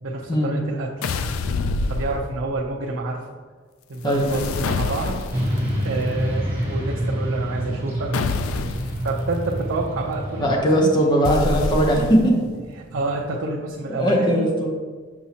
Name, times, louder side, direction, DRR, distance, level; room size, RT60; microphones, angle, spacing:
voice 1, 0.0-0.9 1.9-3.2 3.9-5.2 5.8-8.1 8.8-11.2 12.8-14.5, right 2 dB, 75° right, -3 dB, 0.6 m, -28 dB
sound 1, 1.0-2.6 4.0-5.6 8.1-9.0 11.2-12.4, left 3 dB, 90° left, 0.4 m, -26 dB
Motorcycle / Traffic noise roadway noise, 5.3-10.6, equal, 10° right, 1.2 m, -27 dB
voice 2, 10.4-12.4 13.9-14.7, equal, 20° left, -1 dB, 0.8 m, -19 dB
6.3 x 5.8 x 2.8 m, 1.5 s
head